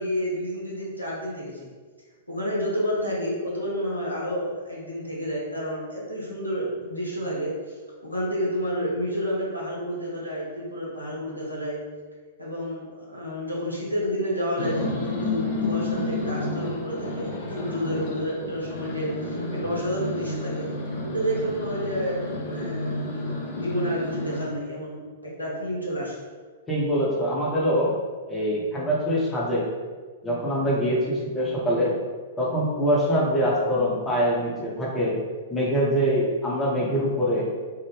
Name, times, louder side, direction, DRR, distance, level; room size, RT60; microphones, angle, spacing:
voice 1, 0.0-1.7 2.3-11.8 12.4-20.7 21.0-26.2, equal, 90° left, -5 dB, 0.9 m, -30 dB
sound 1, 14.6-24.5, left 2 dB, 45° left, 0.5 m, -31 dB
voice 2, 26.7-27.9 28.3-29.7 30.2-32.0 32.4-35.2 35.5-37.5, equal, 15° left, -5 dB, 0.8 m, -24 dB
3.4 x 2.0 x 3.2 m, 1.5 s
figure-of-eight pair, 105°, 0 cm